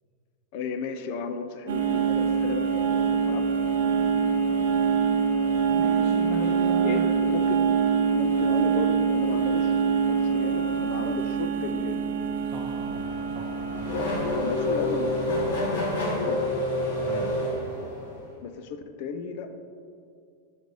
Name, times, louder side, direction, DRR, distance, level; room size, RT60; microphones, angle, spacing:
voice 1, 0.5-3.5 6.3-6.5 6.8-7.7 8.1-12.1 14.2-15.2 16.3-16.4 18.4-19.7, left 5 dB, 45° left, 9 dB, 0.4 m, -34 dB
sound 1, 1.7-15.8, right 6 dB, 90° right, 0.6 m, -25 dB
voice 2, 5.4-7.1 12.4-13.0 13.3-14.0 17.0-17.3, right 4 dB, 25° right, -4 dB, 0.5 m, -38 dB
Race car auto racing / Accelerating revving vroom, 12.7-18.3, left 1 dB, 75° left, 1.3 m, -28 dB
5.2 x 3.9 x 4.7 m, 2.3 s
supercardioid pair, 170°, 0 cm